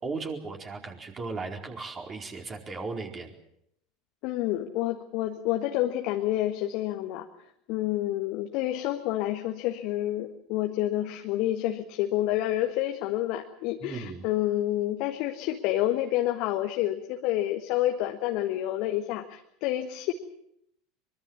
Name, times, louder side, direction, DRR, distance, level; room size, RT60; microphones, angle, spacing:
voice 1, 0.0-3.3 13.8-14.3, right 4 dB, 25° right, 3 dB, 4.4 m, -36 dB
voice 2, 4.2-7.3 7.7-20.1, left 14 dB, 50° left, 5 dB, 1.6 m, -28 dB
23.5 x 23.0 x 7.3 m, 0.74 s
figure-of-eight pair, 75°, 0 cm